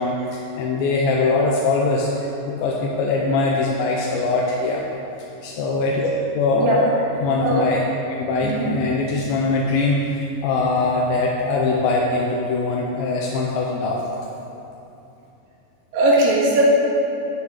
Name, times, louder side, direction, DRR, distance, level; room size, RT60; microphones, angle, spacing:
voice 1, 0.0-4.8 5.4-6.1 6.3-6.8 7.2-7.8 8.1-14.0, left 3 dB, 85° left, -2 dB, 2.5 m, -22 dB
voice 2, 15.9-16.6, right 2 dB, 70° right, -5 dB, 3.2 m, -18 dB
9.6 x 8.9 x 3.1 m, 2.9 s
omnidirectional pair, 4.2 m